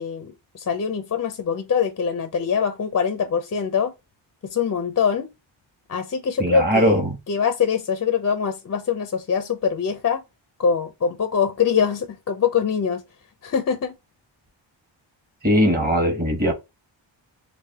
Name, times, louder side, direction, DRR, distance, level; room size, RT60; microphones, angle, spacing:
voice 1, 0.0-3.9 4.4-5.3 5.9-7.0 7.3-10.2 10.6-13.0 13.4-13.9, left 6 dB, 35° left, 0.4 m, -23 dB
voice 2, 6.4-7.1 15.4-16.5, equal, 20° right, 1.0 m, -20 dB
3.2 x 2.5 x 3.4 m
wide cardioid pair, 130°, 46 cm